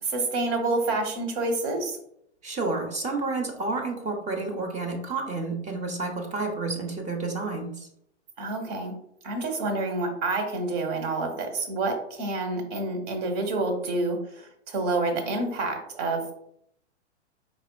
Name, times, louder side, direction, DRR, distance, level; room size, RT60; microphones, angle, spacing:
voice 1, 0.0-2.0 8.4-8.9 9.2-16.3, right 2 dB, 45° right, 5 dB, 1.3 m, -28 dB
voice 2, 2.4-7.9, right 3 dB, 20° right, 2 dB, 0.9 m, -30 dB
5.3 x 4.0 x 2.3 m, 0.74 s
hypercardioid pair, 110°, 35 cm